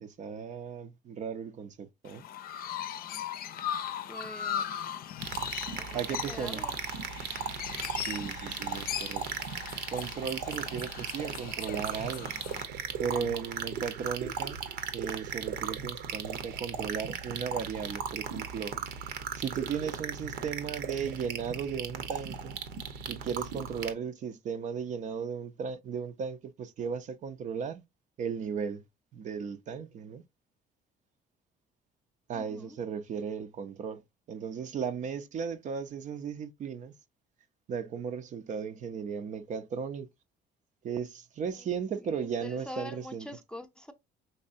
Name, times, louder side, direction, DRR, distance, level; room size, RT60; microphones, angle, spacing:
voice 1, 0.0-2.2 5.9-6.6 7.9-9.2 9.9-12.3 13.0-14.6 14.9-18.7 19.4-22.6 23.1-27.8 28.2-28.8 29.1-30.2 32.3-34.0 34.3-36.9 37.7-40.1 40.8-43.3, right 6 dB, 45° right, 0.5 m, -36 dB
Chirp tweet, 2.1-12.6, left 10 dB, 60° left, 0.5 m, -39 dB
voice 2, 4.1-4.7 5.7-6.8 13.1-13.4 32.3-32.8 41.6-41.7 42.0-43.9, left 1 dB, 5° left, 0.6 m, -44 dB
sound 1, 5.2-23.9, right 7 dB, 85° right, 0.9 m, -37 dB
5.4 x 3.2 x 2.5 m
cardioid pair, 110°, 17 cm